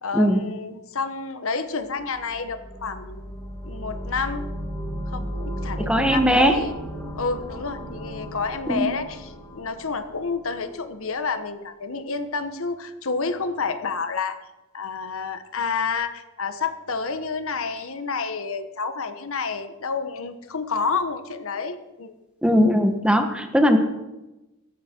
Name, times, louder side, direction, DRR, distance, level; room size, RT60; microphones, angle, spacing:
voice 1, 0.0-3.3 3.6-4.5 5.1-6.8 7.1-14.4 14.7-22.2, left 4 dB, 65° left, 9 dB, 1.2 m, -29 dB
sound 1, 2.0-10.8, equal, 15° left, 2.1 m, -35 dB
voice 2, 5.8-6.5 8.7-8.9 22.4-23.8, equal, 5° right, 6 dB, 1.3 m, -19 dB
15.5 x 14.0 x 4.5 m, 1.0 s
head